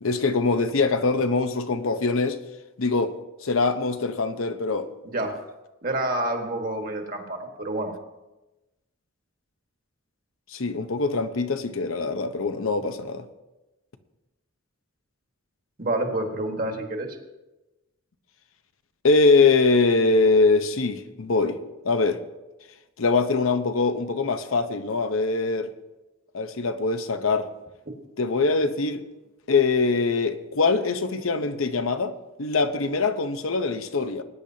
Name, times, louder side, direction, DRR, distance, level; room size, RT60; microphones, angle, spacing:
voice 1, 0.0-2.4 2.8-3.1 3.4-4.9 5.2-5.3 10.5-13.2 19.0-21.6 21.8-22.2 23.0-25.7 26.3-27.5 28.2-29.0 29.5-34.2, left 3 dB, 75° left, 0.8 m, -23 dB
voice 2, 5.0-5.4 5.8-7.9 15.8-17.2, right 2 dB, 40° right, 1.5 m, -28 dB
20.0 x 10.0 x 2.8 m
head